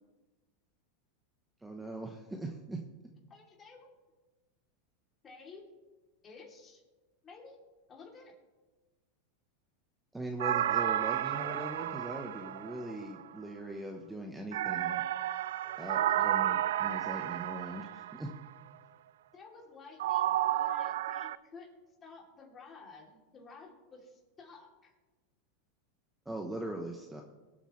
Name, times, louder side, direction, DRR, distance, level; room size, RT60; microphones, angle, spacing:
voice 1, 1.6-2.8 10.1-15.0 15.8-18.3 26.3-27.2, right 1 dB, 5° right, 2 dB, 1.0 m, -40 dB
voice 2, 3.3-3.9 5.2-5.6 6.2-6.8 7.2-7.6 7.9-8.3 16.0-16.3 19.3-21.7 22.0-24.9, left 4 dB, 25° left, -1 dB, 3.0 m, -52 dB
sound 1, 10.4-13.2 14.5-18.3 20.0-21.3, right 12 dB, 85° right, 0.3 m, -32 dB
23.5 x 8.1 x 3.2 m, 1.2 s
supercardioid pair, 140°, 0 cm